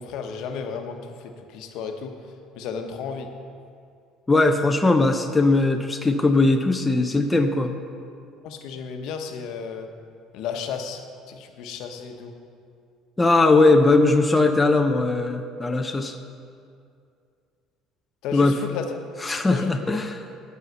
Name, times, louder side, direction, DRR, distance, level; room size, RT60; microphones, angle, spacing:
voice 1, 0.0-2.2 2.6-3.3 8.4-9.9 10.3-12.3 18.2-19.0 19.5-20.0, left 6 dB, 70° left, 5 dB, 1.0 m, -33 dB
voice 2, 4.3-7.7 13.2-16.1 18.3-18.6 19.2-20.1, left 2 dB, 10° left, 4 dB, 0.5 m, -19 dB
11.0 x 5.6 x 8.1 m, 2.4 s
cardioid pair, 130°, 0 cm